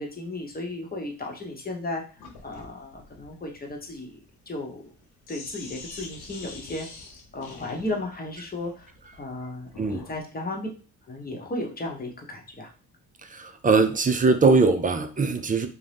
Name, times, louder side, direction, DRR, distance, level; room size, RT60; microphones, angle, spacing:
voice 1, 0.0-2.0 2.4-4.2 4.5-4.9 5.3-7.0 7.3-8.9 9.2-10.7 11.1-12.7, left 2 dB, 25° left, 1 dB, 0.9 m, -34 dB
Sink (filling or washing), 2.2-10.2, left 3 dB, 75° left, 0.8 m, -45 dB
voice 2, 13.2-15.7, right 4 dB, 20° right, 8 dB, 0.4 m, -21 dB
2.6 x 2.1 x 3.3 m, 0.39 s
supercardioid pair, 65°, 38 cm